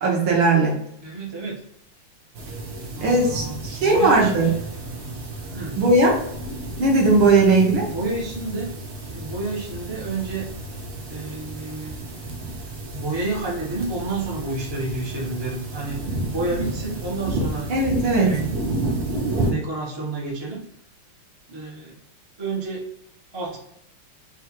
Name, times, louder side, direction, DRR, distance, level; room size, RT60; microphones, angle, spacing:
voice 1, 0.0-0.7 3.0-4.5 5.8-6.1 6.8-7.9 17.7-18.3, right 3 dB, 65° right, -2 dB, 1.9 m, -18 dB
voice 2, 1.0-1.6 2.9-4.6 5.5-5.8 7.9-8.7 9.1-10.4 11.1-11.9 12.9-16.0 16.3-17.7 18.1-18.6 19.4-20.6 21.5-22.0 22.4-22.8 23.3-23.6, right 2 dB, 30° right, -3 dB, 0.4 m, -30 dB
sound 1, 2.3-19.5, right 2 dB, 90° right, 1.8 m, -31 dB
4.3 x 2.4 x 4.4 m, 0.73 s
omnidirectional pair, 2.4 m